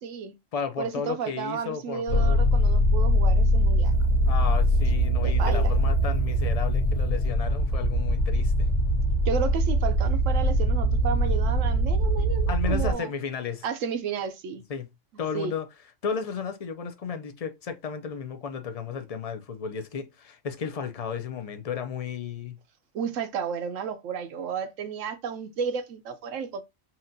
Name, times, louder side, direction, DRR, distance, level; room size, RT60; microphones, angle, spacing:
voice 1, 0.0-0.3 0.8-3.9 5.2-5.7 9.3-13.1 13.6-14.6 15.3-15.5 22.9-26.6, right 7 dB, 80° right, 1.1 m, -32 dB
voice 2, 0.5-2.4 4.3-8.7 12.5-13.7 14.7-14.9 15.2-15.7 16.0-22.6, left 6 dB, 45° left, 0.5 m, -33 dB
sound 1, 2.1-12.9, equal, 65° left, 1.2 m, -22 dB
5.7 x 2.5 x 2.6 m
omnidirectional pair, 1.3 m